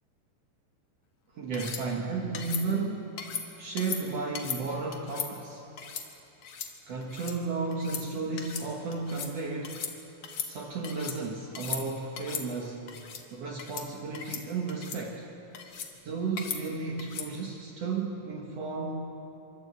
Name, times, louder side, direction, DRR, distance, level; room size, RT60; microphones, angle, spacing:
voice 1, 1.3-3.2 3.6-5.7 6.9-9.9 10.4-12.9 13.3-15.3 16.0-19.1, right 4 dB, 75° right, -1 dB, 1.4 m, -33 dB
sound 1, 1.5-1.8 2.3-2.6 3.2-3.4 3.8-4.0 4.3-4.6 4.9-5.3 5.8-6.0 6.4-6.7 7.0-7.3 7.7-8.0 8.4-8.7 8.9-9.3 9.6-9.9 10.2-11.2 11.5-11.8 12.2-12.4 12.9-13.2 13.6-13.9 14.1-14.4 14.7-15.0 15.5-15.9 16.4-16.6 17.0-17.3, left 7 dB, 85° left, 1.3 m, -37 dB
27.5 x 12.0 x 8.2 m, 2.9 s
omnidirectional pair, 5.1 m